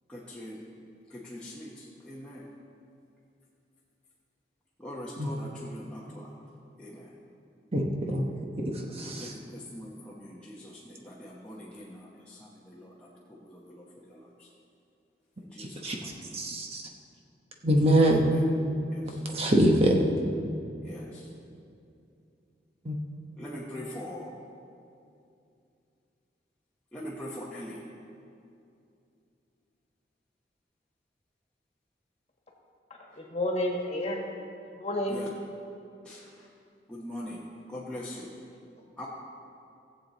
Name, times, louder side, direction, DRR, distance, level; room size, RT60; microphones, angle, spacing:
voice 1, 0.1-0.7 1.1-2.5 4.8-6.4 6.8-7.2 9.0-14.5 15.4-16.4 18.1-18.4 18.9-19.3 20.8-21.3 23.4-24.4 26.9-27.9 33.1-33.2 35.1-35.3 36.0-36.5 36.9-38.3 39.0-39.1, left 1 dB, 5° left, -7 dB, 0.9 m, -43 dB
voice 2, 7.7-8.3 8.6-9.3 15.6-16.8 17.6-18.3 19.3-20.0 22.8-23.0, right 1 dB, 35° right, 1 dB, 1.0 m, -25 dB
voice 3, 33.0-34.2 34.8-35.2, left 1 dB, 35° left, 0 dB, 1.5 m, -30 dB
17.0 x 7.8 x 4.0 m, 2.6 s
head